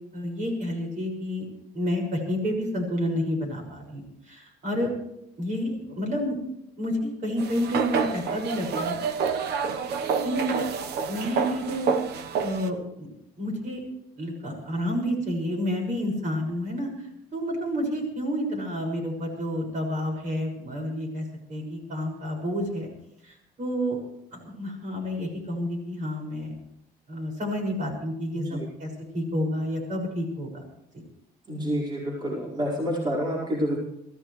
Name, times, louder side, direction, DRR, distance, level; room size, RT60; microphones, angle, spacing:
voice 1, 0.1-1.4 1.7-4.9 5.4-6.4 6.8-9.0 10.2-10.6 11.1-11.9 12.4-13.1 13.4-13.8 14.2-22.9 23.2-24.0 24.3-26.6 27.1-30.6, equal, 50° right, 2 dB, 6.2 m, -30 dB
sound 1, 7.4-12.7, right 6 dB, 75° right, 1.2 m, -28 dB
voice 2, 28.3-28.7 31.5-33.8, equal, 25° right, -4 dB, 4.8 m, -28 dB
24.0 x 15.0 x 3.3 m, 0.81 s
cardioid pair, 110°, 17 cm